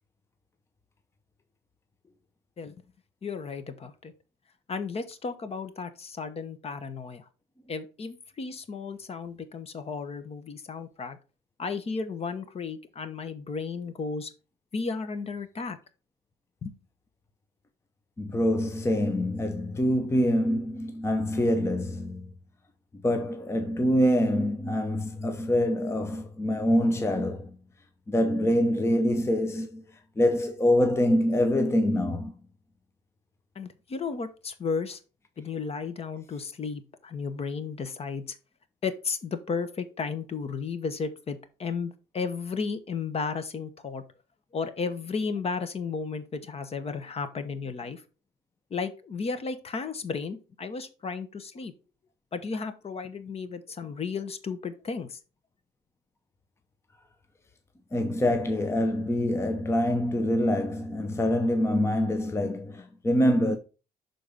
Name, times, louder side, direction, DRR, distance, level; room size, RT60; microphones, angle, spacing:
voice 1, 3.2-4.1 4.7-7.3 7.7-11.2 11.6-14.3 14.7-15.8 16.6-16.7 33.5-35.0 35.4-38.4 38.8-44.0 44.5-48.0 48.7-51.7 52.3-55.2, left 5 dB, 35° left, 1.0 m, -34 dB
voice 2, 18.2-22.3 23.0-27.5 28.1-29.8 30.2-32.3 57.9-63.6, left 1 dB, 15° left, 0.7 m, -25 dB
6.5 x 3.9 x 5.4 m
cardioid pair, 110°, 17 cm